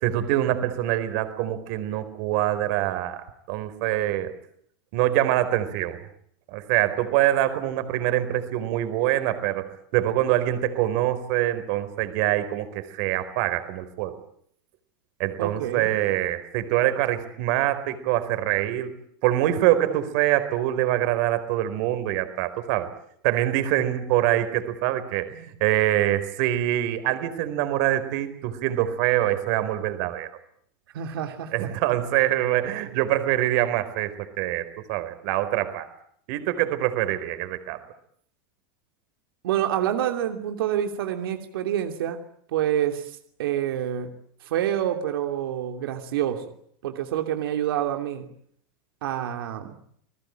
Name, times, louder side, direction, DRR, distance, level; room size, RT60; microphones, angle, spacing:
voice 1, 0.0-4.3 4.9-6.0 6.5-14.1 15.2-18.9 19.2-22.9 23.2-30.3 31.5-35.9 36.3-37.8, right 13 dB, 50° right, 11 dB, 4.4 m, -24 dB
voice 2, 15.4-15.9 30.9-31.5 39.4-42.2 42.5-44.1 44.4-46.4 46.8-48.3 49.0-49.7, right 11 dB, 85° right, 5 dB, 3.0 m, -27 dB
30.0 x 20.0 x 9.0 m, 0.69 s
supercardioid pair, 170°, 12 cm